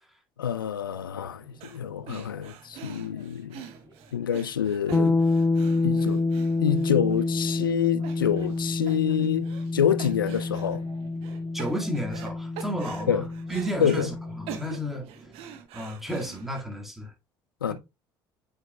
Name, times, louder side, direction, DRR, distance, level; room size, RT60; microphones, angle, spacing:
voice 1, 0.4-3.6 4.1-5.2 5.8-6.2 6.6-10.8 13.1-13.3 13.8-14.1 17.6-17.7, left 9 dB, 90° left, 0.4 m, -27 dB
sound 1, 0.9-15.7, right 3 dB, 45° right, 3.0 m, -53 dB
sound 2, 1.6-1.8 2.1-7.2 7.6-7.7 8.0-8.6 8.9-9.7 10.0-10.8 11.2-12.3 12.6-14.1 14.5-16.6, right 9 dB, 60° right, 1.0 m, -43 dB
sound 3, 4.9-14.7, left 3 dB, 15° left, 0.5 m, -28 dB
voice 2, 11.5-13.2 13.5-15.1 15.7-17.1, equal, ahead, 1.9 m, -32 dB
8.0 x 5.2 x 2.3 m
hypercardioid pair, 60°, 11 cm